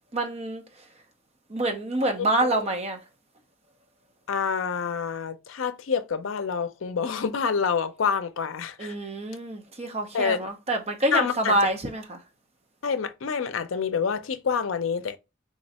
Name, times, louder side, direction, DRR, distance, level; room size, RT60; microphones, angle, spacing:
voice 1, 0.1-0.6 1.5-3.0 8.8-12.2, right 1 dB, 30° right, 0.7 m, -26 dB
voice 2, 2.2-2.6 4.3-8.9 10.1-10.4 11.1-11.6 12.8-15.2, left 6 dB, 75° left, 0.5 m, -27 dB
3.7 x 3.1 x 2.8 m
head